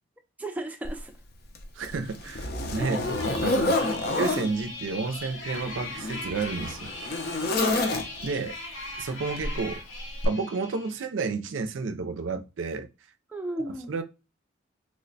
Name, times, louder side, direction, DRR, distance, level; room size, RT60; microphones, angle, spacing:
voice 1, 0.4-1.1 2.8-3.0 3.8-4.0 7.6-7.9 13.3-13.9, right 1 dB, 10° right, 0.4 m, -34 dB
Zipper (clothing), 0.8-1.0 1.5-4.5 5.4-8.4 9.4-9.6 10.2-10.3, left 2 dB, 50° left, 0.6 m, -29 dB
voice 2, 1.8-3.0 3.4-3.8 4.2-6.9 8.2-8.5 9.0-9.8 10.2-12.9 13.9-14.0, right 4 dB, 75° right, 0.4 m, -31 dB
sound 1, 3.0-11.0, left 2 dB, 90° left, 1.2 m, -40 dB
3.0 x 2.1 x 3.9 m
head